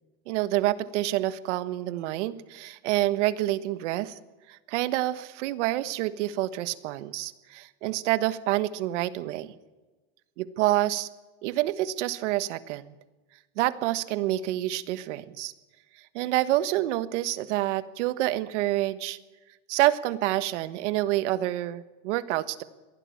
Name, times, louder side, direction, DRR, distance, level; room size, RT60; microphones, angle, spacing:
voice 1, 0.3-4.2 4.5-9.5 10.4-11.1 11.4-12.9 13.6-15.5 16.1-19.2 19.7-22.6, right 15 dB, 85° right, 13 dB, 1.4 m, -27 dB
22.5 x 16.0 x 8.6 m, 1.2 s
supercardioid pair, 150°, 35 cm